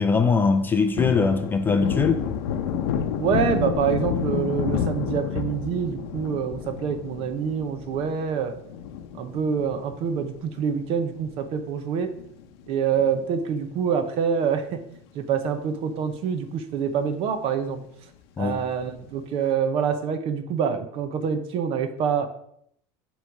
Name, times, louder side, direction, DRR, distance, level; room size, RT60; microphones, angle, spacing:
voice 1, 0.0-2.2 18.4-18.6, left 4 dB, 15° left, 7 dB, 0.4 m, -21 dB
Thunder, 0.5-11.3 11.7-11.8 12.1-13.6 13.9-14.1 14.4-15.2 15.6-15.7 16.1-16.2 18.5-19.1, left 8 dB, 85° left, 0.7 m, -30 dB
voice 2, 3.2-8.5 9.1-12.1 12.7-14.8 15.1-17.8 18.4-22.3, right 7 dB, 45° right, 9 dB, 0.8 m, -26 dB
8.1 x 3.2 x 5.3 m, 0.70 s
cardioid pair, 155°, 13 cm